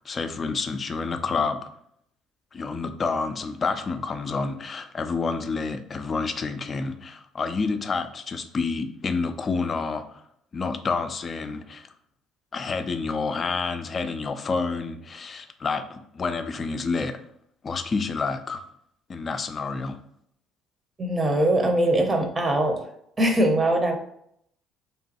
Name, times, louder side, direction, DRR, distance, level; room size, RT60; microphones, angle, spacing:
voice 1, 0.1-1.7 2.5-10.2 10.5-11.9 12.5-17.2 17.6-18.6 19.1-20.0, left 4 dB, 40° left, 0.3 m, -29 dB
voice 2, 21.0-22.8 23.2-24.0, right 1 dB, 30° right, 0.7 m, -22 dB
3.0 x 2.2 x 2.8 m
hypercardioid pair, 55°, 0 cm